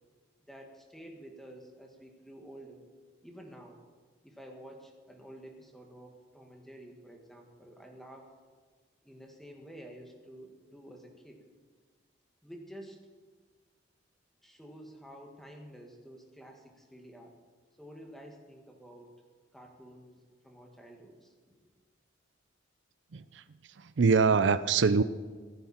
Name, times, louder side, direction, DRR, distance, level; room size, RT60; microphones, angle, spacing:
voice 1, 0.5-2.8 3.2-3.8 4.2-8.3 9.0-11.4 12.4-13.0 14.4-17.3 17.8-19.1 19.5-21.3, equal, ahead, 1 dB, 2.0 m, -50 dB
voice 2, 23.1-23.4 23.8-25.0, right 5 dB, 65° right, 13 dB, 0.5 m, -24 dB
27.0 x 9.4 x 4.4 m, 1.5 s
head